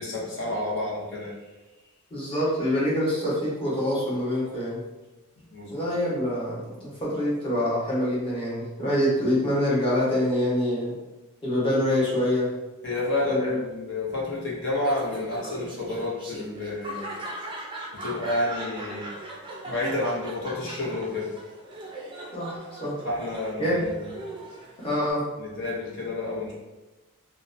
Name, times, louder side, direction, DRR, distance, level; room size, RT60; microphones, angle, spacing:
voice 1, 0.0-1.4 5.5-5.7 12.8-17.0 17.9-19.1 19.6-21.3 23.0-24.1 25.4-26.5, left 2 dB, 60° left, -4 dB, 0.7 m, -30 dB
voice 2, 2.1-4.8 5.7-10.9 11.4-12.5 13.2-13.6 22.3-23.0 23.6-23.8 24.8-25.2, left 1 dB, 25° left, -7 dB, 0.9 m, -25 dB
Laughter, 14.7-25.1, right 1 dB, 20° right, 0.4 m, -39 dB
2.7 x 2.1 x 2.5 m, 1.1 s
head